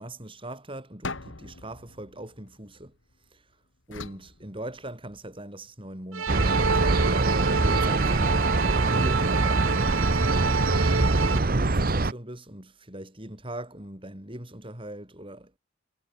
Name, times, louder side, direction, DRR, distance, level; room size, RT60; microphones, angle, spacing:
voice 1, 0.0-3.0 3.9-7.0 7.4-8.5 8.9-10.1 10.9-15.6, right 1 dB, 25° right, 5.2 m, -40 dB
sound 1, 1.0-3.2 3.9-5.3, left 3 dB, 60° left, 2.2 m, -41 dB
sound 2, 6.1-11.4, right 5 dB, 75° right, 1.4 m, -28 dB
sound 3, 6.3-12.1, right 2 dB, 45° right, 1.0 m, -23 dB
head